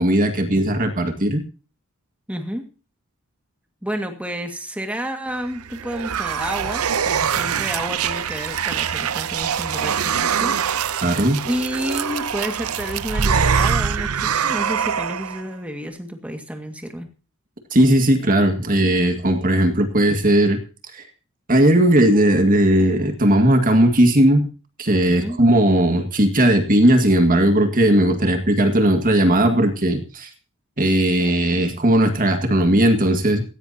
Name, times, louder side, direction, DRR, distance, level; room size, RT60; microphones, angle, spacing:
voice 1, 0.0-1.4 11.0-11.4 17.7-20.6 20.9-21.0 21.5-24.5 24.8-30.3 30.8-33.4, right 1 dB, 40° right, 5 dB, 2.0 m, -17 dB
voice 2, 2.3-2.6 3.8-11.0 11.4-17.1 25.0-25.4, equal, 5° right, 4 dB, 2.0 m, -30 dB
sound 1, 5.4-15.4, right 7 dB, 85° right, 0.7 m, -23 dB
17.0 x 16.0 x 2.9 m, 0.34 s
head